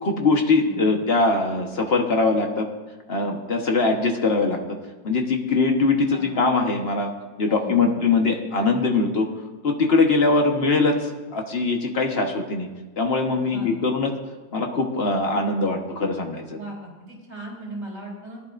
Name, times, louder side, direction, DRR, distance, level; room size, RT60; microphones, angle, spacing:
voice 1, 0.0-2.7 3.1-4.6 5.0-7.1 7.4-9.3 9.6-12.7 13.0-14.1 14.5-16.6, left 3 dB, 40° left, 2 dB, 1.3 m, -22 dB
voice 2, 0.6-1.0 6.1-6.4 7.5-8.1 13.5-13.7 16.5-18.4, right 1 dB, 50° right, -3 dB, 4.2 m, -37 dB
21.0 x 11.0 x 2.6 m, 1.2 s
omnidirectional pair, 1.8 m